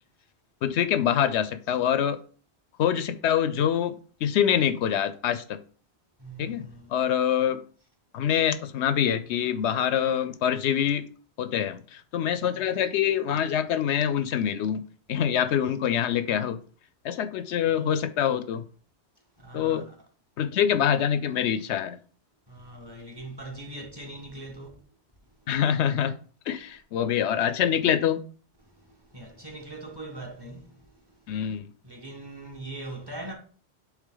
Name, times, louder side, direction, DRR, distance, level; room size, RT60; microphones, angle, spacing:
voice 1, 0.6-2.2 2.8-4.0 4.2-5.6 6.4-7.6 8.1-11.0 11.4-14.8 15.1-16.6 17.0-18.6 19.5-19.9 20.4-22.0 25.5-26.2 26.5-28.2 31.3-31.7, left 9 dB, 90° left, 0.9 m, -25 dB
voice 2, 6.2-7.0 19.4-19.8 22.5-24.7 29.1-30.7 31.8-33.3, right 2 dB, 20° right, 1.3 m, -41 dB
8.1 x 3.5 x 3.8 m
omnidirectional pair, 1.1 m